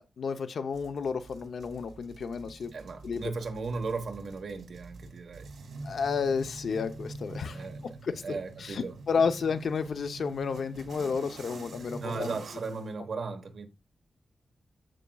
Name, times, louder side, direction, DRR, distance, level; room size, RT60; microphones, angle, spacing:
voice 1, 0.0-2.7 3.0-3.3 5.8-7.7 8.0-12.3, left 5 dB, 70° left, 0.8 m, -31 dB
sound 1, 0.7-12.9, right 2 dB, 75° right, 2.2 m, -46 dB
voice 2, 2.7-5.5 7.5-8.0 8.2-9.0 12.0-13.7, right 4 dB, 60° right, 1.3 m, -36 dB
14.0 x 5.1 x 2.4 m
wide cardioid pair, 155°, 0 cm